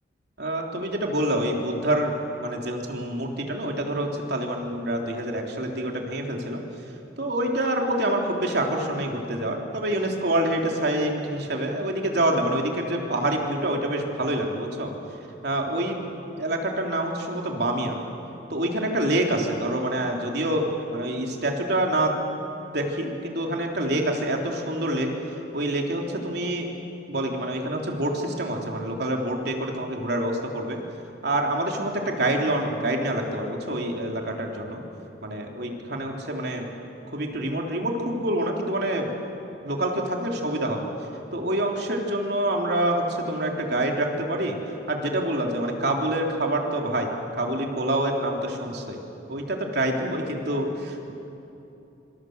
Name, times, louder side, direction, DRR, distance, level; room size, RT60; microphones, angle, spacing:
voice 1, 0.4-6.6 7.2-14.9 15.4-16.1 16.4-18.0 18.5-22.2 22.7-25.1 25.5-26.6 27.1-30.8 31.2-34.8 35.2-36.7 37.1-39.1 39.6-40.9 41.3-44.6 44.9-47.1 47.4-49.0 49.3-51.1, right 1 dB, 60° right, 1 dB, 3.5 m, -26 dB
26.5 x 25.5 x 8.1 m, 2.9 s
head